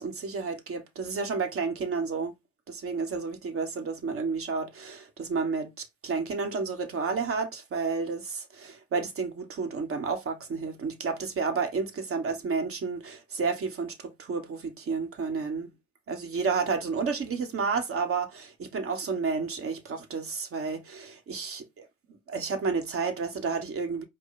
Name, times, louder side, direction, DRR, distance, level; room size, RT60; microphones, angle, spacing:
voice 1, 0.0-2.3 2.7-5.7 6.0-15.7 16.1-21.9 22.3-24.0, right 4 dB, 30° right, 1.4 m, -31 dB
5.1 x 2.3 x 4.0 m
hypercardioid pair, 85°, 42 cm